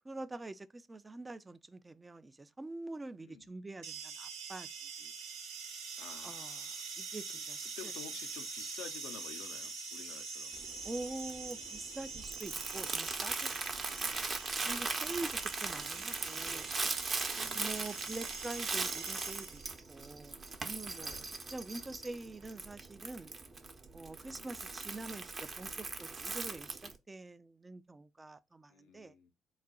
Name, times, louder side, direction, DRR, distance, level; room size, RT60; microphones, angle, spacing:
voice 1, 0.0-4.7 5.0-5.1 6.2-6.6 7.0-7.9 10.8-13.6 14.6-16.8 17.5-19.6 19.9-23.3 23.9-29.1, right 2 dB, 20° right, 0.5 m, -45 dB
sound 1, 3.8-19.8, right 4 dB, 75° right, 0.8 m, -44 dB
voice 2, 6.0-6.8 7.3-10.6 13.8-14.2 15.2-15.4 17.2-17.9 20.9-21.4 24.2-24.5 28.7-29.3, left 9 dB, 70° left, 0.5 m, -52 dB
Crumpling crinkling, 10.5-27.0, right 3 dB, 40° right, 0.8 m, -39 dB
4.0 x 2.2 x 3.6 m
hypercardioid pair, 50°, 0 cm